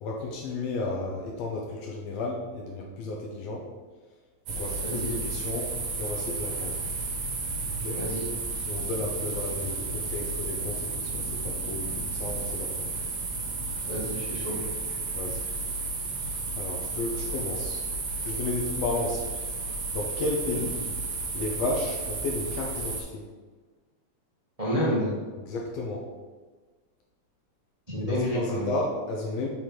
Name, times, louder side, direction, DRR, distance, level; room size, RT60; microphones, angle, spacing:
voice 1, 0.0-3.6 4.6-5.7 6.0-6.8 7.8-8.0 8.6-12.9 15.1-15.4 16.6-17.8 18.2-19.3 19.9-20.7 21.3-23.2 25.5-26.0 28.0-29.5, left 2 dB, 75° left, -1 dB, 1.7 m, -33 dB
sound 1, 4.5-23.0, right 3 dB, 65° right, 2.0 m, -32 dB
voice 2, 4.8-5.2 7.9-8.2 13.9-14.5 24.6-25.1 27.9-28.7, equal, 35° right, -8 dB, 0.5 m, -29 dB
6.4 x 3.8 x 4.5 m, 1.4 s
omnidirectional pair, 3.5 m